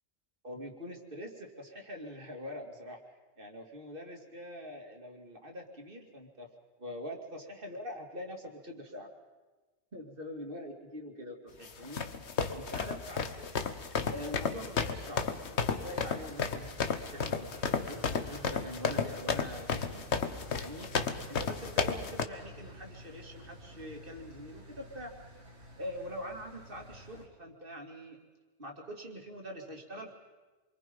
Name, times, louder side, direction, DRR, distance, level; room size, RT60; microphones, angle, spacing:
voice 1, 0.4-6.5 6.8-9.1 9.9-12.0 12.3-13.6 14.1-20.0 20.6-20.9 21.3-25.1 25.8-28.2 28.6-30.1, equal, 50° right, 2 dB, 2.8 m, -44 dB
sound 1, 11.6-22.2, left 5 dB, 70° left, 1.4 m, -33 dB
Engine, 16.5-27.3, equal, 70° right, 3.0 m, -51 dB
28.5 x 23.0 x 5.4 m, 1.2 s
omnidirectional pair, 1.2 m